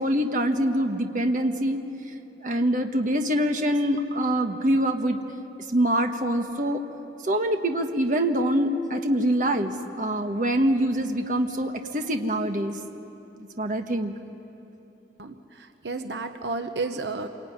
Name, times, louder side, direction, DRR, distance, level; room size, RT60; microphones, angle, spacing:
voice 1, 0.0-1.8 2.4-5.2 5.7-6.8 7.2-12.7 13.6-14.1, right 1 dB, 45° right, 5 dB, 1.4 m, -24 dB
voice 2, 15.2-17.3, right 3 dB, 75° right, 7 dB, 1.1 m, -32 dB
27.0 x 22.5 x 9.5 m, 3.0 s
head